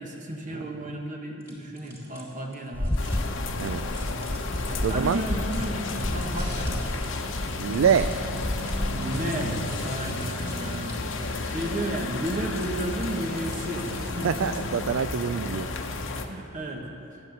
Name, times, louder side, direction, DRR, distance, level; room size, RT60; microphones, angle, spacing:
voice 1, 0.0-3.2 4.6-6.9 8.9-11.0 11.4-14.8 16.3-16.9, right 1 dB, 40° right, 1 dB, 1.3 m, -33 dB
sound 1, 1.4-14.8, right 1 dB, 15° right, 2.6 m, -49 dB
sound 2, 2.7-9.0, left 1 dB, 10° left, 0.4 m, -31 dB
sound 3, 3.0-16.3, left 3 dB, 65° left, 0.9 m, -32 dB
voice 2, 3.5-3.8 4.8-5.2 7.6-8.1 14.2-15.7, right 7 dB, 70° right, 11 dB, 0.4 m, -25 dB
12.0 x 8.8 x 7.9 m, 2.6 s
head